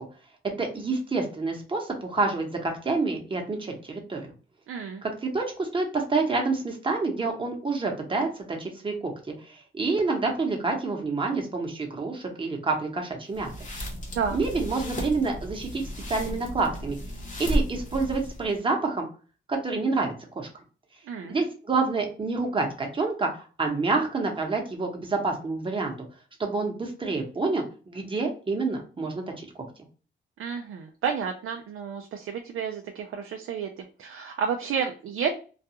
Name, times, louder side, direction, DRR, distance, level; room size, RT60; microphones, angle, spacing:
voice 1, 0.6-4.3 5.0-9.1 9.5-13.5 14.3-17.0 17.4-19.0 19.5-20.5 21.3-25.9 26.4-29.6, right 3 dB, 25° right, 1 dB, 0.9 m, -28 dB
voice 2, 4.7-5.0 14.1-14.4 21.1-21.4 30.4-35.3, right 7 dB, 85° right, 3 dB, 0.4 m, -31 dB
sound 1, 13.3-18.6, equal, 35° left, 0.8 m, -33 dB
2.4 x 2.2 x 2.8 m, 0.36 s
cardioid pair, 95°, 21 cm